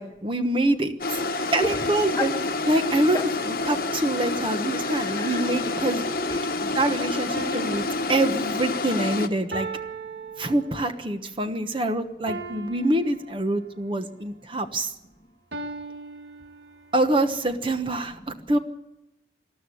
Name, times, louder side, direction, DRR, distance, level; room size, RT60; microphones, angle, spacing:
voice 1, 0.0-2.3 2.7-3.2 3.7-6.0 6.7-9.7 10.4-14.9 16.9-18.6, right 1 dB, 30° right, 8 dB, 1.2 m, -25 dB
sound 1, 1.0-9.3, left 3 dB, 55° left, 1.2 m, -28 dB
voice 2, 5.2-5.5 5.8-6.7, left 2 dB, 20° left, 7 dB, 1.2 m, -32 dB
sound 2, 7.3-11.1 12.3-13.8 15.5-17.1, right 3 dB, 70° right, 1.9 m, -38 dB
20.0 x 13.0 x 9.9 m, 0.90 s
head